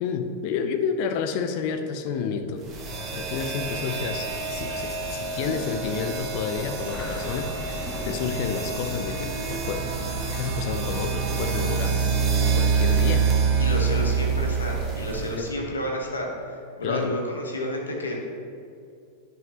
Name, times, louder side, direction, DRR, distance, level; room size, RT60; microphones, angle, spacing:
voice 1, 0.0-2.6 3.1-9.9 10.3-12.0 12.5-13.3 15.3-15.5 16.8-17.1, left 6 dB, 45° left, 7 dB, 0.5 m, -30 dB
sound 1, 2.6-15.5, right 5 dB, 30° right, 1.3 m, -27 dB
sound 2, 6.9-13.4, left 2 dB, 20° left, 0.8 m, -41 dB
sound 3, 8.5-14.0, right 1 dB, 65° right, 1.6 m, -40 dB
voice 2, 13.6-18.2, left 1 dB, 75° left, 0 dB, 1.1 m, -30 dB
10.5 x 5.6 x 2.9 m, 2.4 s
figure-of-eight pair, 90°, 0 cm